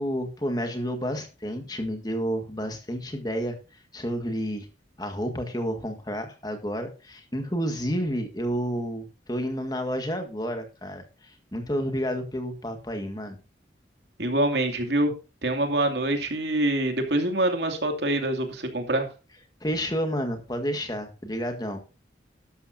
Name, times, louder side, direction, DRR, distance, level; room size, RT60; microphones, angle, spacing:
voice 1, 0.0-3.6 3.9-4.7 5.0-13.4 19.6-21.8, equal, 20° left, 6 dB, 1.7 m, -30 dB
voice 2, 14.2-15.1 15.4-19.1, right 1 dB, 70° right, 5 dB, 2.6 m, -25 dB
12.5 x 12.5 x 2.7 m, 0.30 s
head